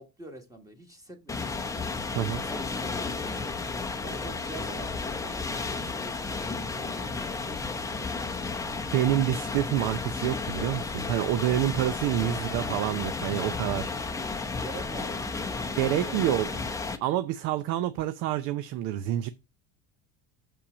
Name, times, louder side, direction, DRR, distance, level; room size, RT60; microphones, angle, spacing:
voice 1, 0.0-8.5 12.3-12.9 14.0-14.1 14.6-17.0, right 1 dB, 10° right, 1.5 m, -45 dB
sound 1, 1.3-17.0, left 4 dB, 10° left, 0.7 m, -33 dB
voice 2, 8.9-13.9 15.8-16.5 17.0-19.3, right 13 dB, 55° right, 0.6 m, -27 dB
7.0 x 5.7 x 5.0 m
cardioid pair, 155°, 37 cm